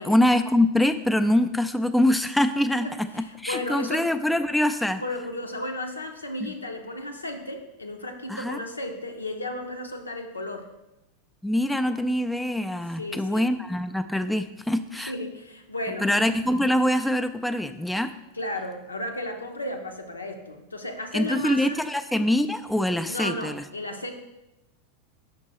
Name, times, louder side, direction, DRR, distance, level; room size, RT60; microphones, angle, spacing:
voice 1, 0.0-5.0 6.4-6.5 8.3-8.6 11.4-15.1 16.0-18.1 21.1-23.6, left 1 dB, 5° left, 8 dB, 0.3 m, -24 dB
voice 2, 3.2-4.1 5.0-10.7 13.0-13.5 14.9-16.1 18.3-21.8 23.1-24.1, left 1 dB, 85° left, 4 dB, 0.7 m, -34 dB
5.3 x 5.2 x 4.0 m, 0.94 s
figure-of-eight pair, 90°, 0 cm